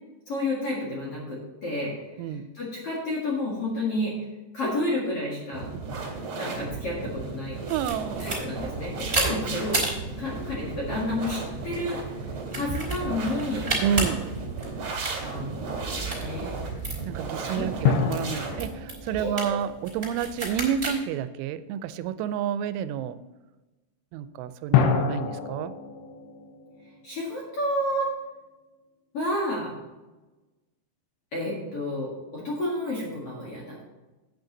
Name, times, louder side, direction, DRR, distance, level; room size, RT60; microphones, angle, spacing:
voice 1, 0.3-4.2 4.5-5.7 6.4-7.6 8.2-9.8 10.2-13.7 15.2-16.5 17.4-17.7 19.2-19.6 27.0-28.1 29.1-29.8 31.3-33.9, left 1 dB, 50° left, -5 dB, 1.8 m, -31 dB
sound 1, 5.5-18.6, right 4 dB, 40° right, 3.4 m, -35 dB
sound 2, 7.7-20.9, right 2 dB, 15° right, 2.6 m, -34 dB
voice 2, 7.7-8.3 13.8-14.3 17.0-23.2 24.1-25.7, right 9 dB, 85° right, 13 dB, 3.0 m, -29 dB
sound 3, 17.8-20.7 24.7-28.0, left 7 dB, 80° left, 3.2 m, -28 dB
9.1 x 8.9 x 3.9 m, 1.1 s
omnidirectional pair, 5.4 m